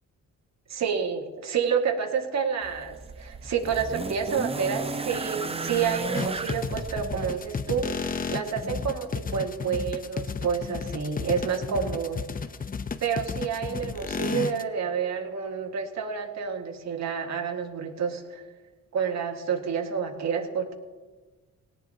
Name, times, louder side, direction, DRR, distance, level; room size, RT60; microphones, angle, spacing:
voice 1, 0.7-12.2 13.0-18.4 18.9-20.7, right 6 dB, 60° right, 5 dB, 1.8 m, -29 dB
sound 1, 2.6-7.8 8.9-9.0, right 3 dB, 20° right, 0.8 m, -34 dB
sound 2, 6.1-14.6, left 5 dB, 30° left, 0.7 m, -32 dB
18.5 x 18.0 x 2.9 m, 1.3 s
cardioid pair, 90°, 30 cm